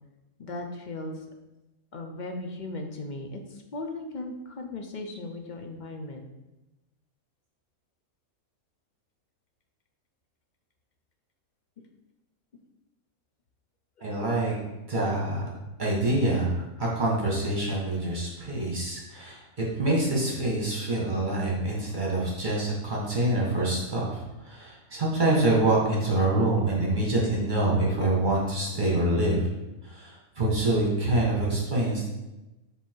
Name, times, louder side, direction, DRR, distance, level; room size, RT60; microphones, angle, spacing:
voice 1, 0.4-1.2 1.9-6.2 14.0-14.1, left 2 dB, 45° left, 4 dB, 0.6 m, -37 dB
voice 2, 14.0-14.6 14.9-15.4 15.8-19.4 19.7-29.5 29.8-32.1, right 2 dB, 35° right, -4 dB, 1.5 m, -26 dB
7.1 x 3.5 x 4.5 m, 1.0 s
omnidirectional pair, 1.5 m